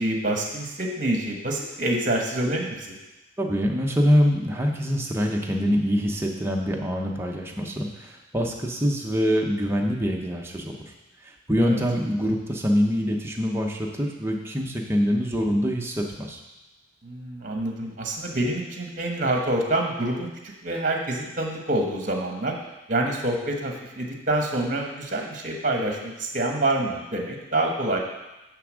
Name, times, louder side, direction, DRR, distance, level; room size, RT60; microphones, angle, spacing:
voice 1, 0.0-3.0 11.6-11.8 17.0-20.3 20.6-22.5 22.9-28.0, right 1 dB, 40° right, 1 dB, 1.2 m, -26 dB
voice 2, 3.4-10.8 11.2-16.4, equal, 10° right, 0 dB, 0.9 m, -24 dB
9.8 x 3.5 x 6.3 m, 1.0 s
head